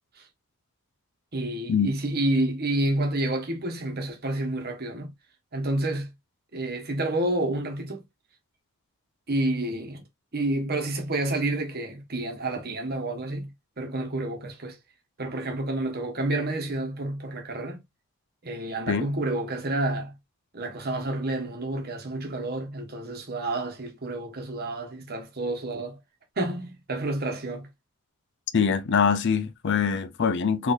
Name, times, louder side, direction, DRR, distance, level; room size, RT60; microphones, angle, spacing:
voice 1, 1.3-5.1 5.5-6.1 6.5-8.0 9.3-10.0 10.3-13.5 13.8-14.8 15.2-17.8 18.4-20.1 20.5-26.0 26.4-27.7, right 2 dB, 45° right, 1.2 m, -29 dB
voice 2, 28.5-30.7, left 6 dB, 55° left, 0.5 m, -23 dB
4.0 x 3.2 x 2.5 m
head